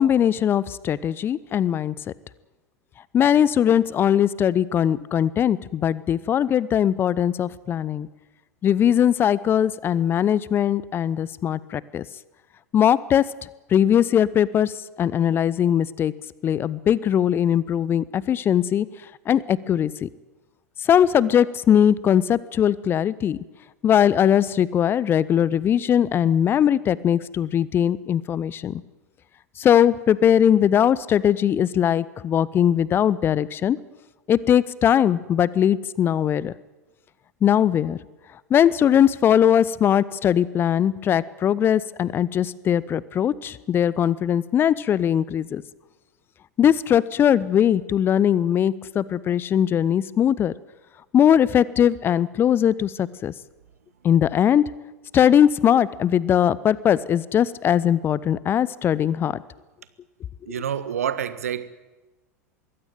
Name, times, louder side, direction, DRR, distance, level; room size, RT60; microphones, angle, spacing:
voice 1, 0.0-1.9 3.1-8.1 8.6-12.0 12.7-13.2 13.7-14.7 15.0-16.1 16.4-18.9 19.3-20.1 20.8-23.4 23.8-28.8 29.6-33.8 34.3-36.5 37.4-38.0 38.5-45.6 46.6-50.5 51.1-53.3 54.0-54.6 55.1-59.4, left 9 dB, 25° left, 0.7 m, -20 dB
voice 2, 60.4-61.7, right 9 dB, 65° right, 1.2 m, -27 dB
22.5 x 16.5 x 9.1 m
figure-of-eight pair, 85°, 8 cm